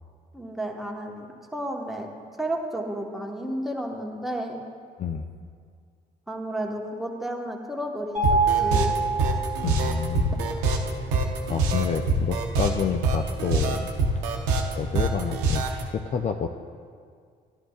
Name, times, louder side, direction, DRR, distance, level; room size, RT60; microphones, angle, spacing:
voice 1, 0.3-2.1 2.4-4.6 6.3-8.9, right 1 dB, ahead, 0 dB, 1.2 m, -32 dB
voice 2, 5.0-5.3 9.6-10.4 11.5-13.9 14.2-16.5, left 6 dB, 40° left, 6 dB, 0.5 m, -29 dB
Mallet percussion, 8.1-10.1, right 4 dB, 40° right, 1.5 m, -25 dB
sound 1, 8.2-15.8, right 3 dB, 90° right, 0.7 m, -25 dB
11.5 x 11.0 x 2.4 m, 2.1 s
supercardioid pair, 60°, 18 cm